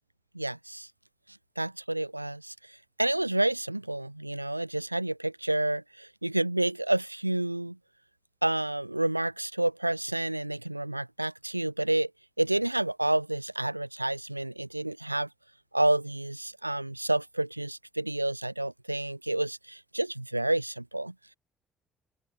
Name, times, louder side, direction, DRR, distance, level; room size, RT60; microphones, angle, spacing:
voice 1, 0.3-0.9 1.6-7.8 8.4-12.1 12.4-15.3 15.7-21.1, right 1 dB, 90° right, 0.3 m, -29 dB
open air
figure-of-eight pair, 45°, 0 cm